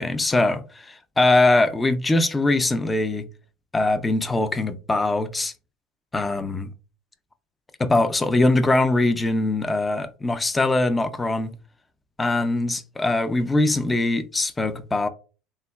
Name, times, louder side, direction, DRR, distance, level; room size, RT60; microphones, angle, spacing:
voice 1, 0.0-3.3 3.7-5.5 6.1-6.7 7.8-11.5 12.2-15.1, left 2 dB, 15° left, 0.3 m, -22 dB
3.5 x 2.2 x 2.2 m
supercardioid pair, 100°, 0 cm